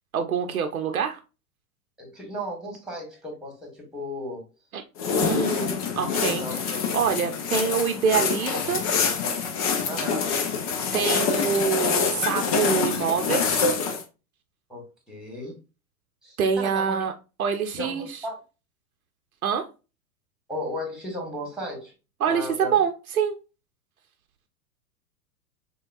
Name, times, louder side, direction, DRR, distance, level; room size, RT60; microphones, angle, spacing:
voice 1, 0.1-1.2 4.7-4.8 5.2-8.8 10.9-13.6 16.4-17.1 17.4-18.2 19.4-19.7 22.2-23.4, right 7 dB, 65° right, 5 dB, 0.8 m, -26 dB
voice 2, 2.0-4.5 5.0-6.1 6.4-6.8 9.9-10.3 14.7-15.6 16.2-17.1 17.8-18.4 20.5-21.9 22.3-22.8, equal, ahead, 0 dB, 1.5 m, -35 dB
sound 1, 5.0-14.0, left 5 dB, 25° left, 0.4 m, -25 dB
6.4 x 2.3 x 2.3 m, 0.29 s
figure-of-eight pair, 95°, 46 cm